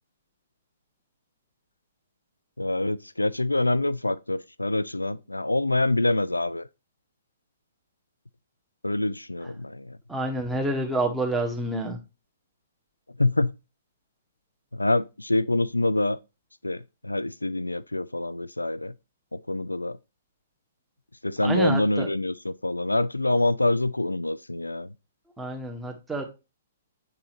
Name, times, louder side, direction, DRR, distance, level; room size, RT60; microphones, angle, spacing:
voice 1, 2.6-6.7 8.8-10.0 13.2-13.5 14.7-16.2 16.6-18.9 19.3-20.0 21.2-24.9, left 2 dB, 85° left, 0.4 m, -26 dB
voice 2, 10.1-12.0 21.4-22.1 25.4-26.3, right 2 dB, 5° right, 1.5 m, -28 dB
8.6 x 3.8 x 3.0 m
figure-of-eight pair, 120°, 0 cm